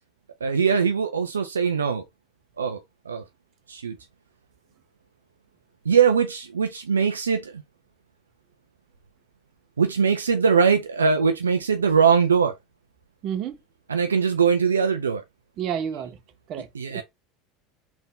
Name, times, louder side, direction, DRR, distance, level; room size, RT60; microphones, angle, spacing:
voice 1, 0.4-2.0 2.6-2.8 3.1-3.2 3.7-4.0 5.9-7.6 9.8-12.5 13.9-15.2 16.7-17.0, right 6 dB, 85° right, 0.4 m, -21 dB
voice 2, 13.2-13.6 15.6-16.2 16.5-17.0, right 8 dB, 45° right, 0.7 m, -30 dB
3.6 x 2.5 x 3.6 m
figure-of-eight pair, 75°, 0 cm